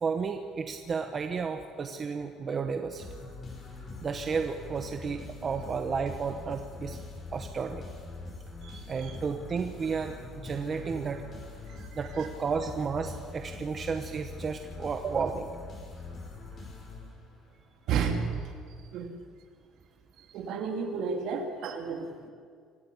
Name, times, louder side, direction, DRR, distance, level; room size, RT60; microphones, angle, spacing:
voice 1, 0.0-3.0 4.0-7.0 7.3-7.9 8.9-11.2 11.9-15.5, right 5 dB, 25° right, 5 dB, 1.1 m, -32 dB
sound 1, 3.0-17.6, left 3 dB, 30° left, 4.7 m, -43 dB
voice 2, 8.6-9.2 11.7-12.3 17.9-18.3 18.9-19.2 20.2-22.3, right 6 dB, 55° right, 3 dB, 2.8 m, -33 dB
26.0 x 14.0 x 8.4 m, 2.1 s
cardioid pair, 155°, 0 cm